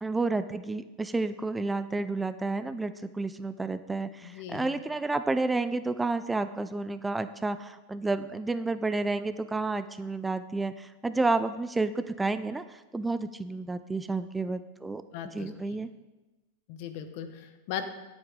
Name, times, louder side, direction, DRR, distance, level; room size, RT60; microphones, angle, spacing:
voice 1, 0.0-15.0 15.3-15.9, right 3 dB, 10° right, 12 dB, 0.5 m, -30 dB
voice 2, 4.2-4.7 15.1-15.5 16.7-17.8, left 9 dB, 60° left, 8 dB, 1.2 m, -38 dB
15.5 x 8.0 x 3.7 m, 1.1 s
hypercardioid pair, 110°, 0 cm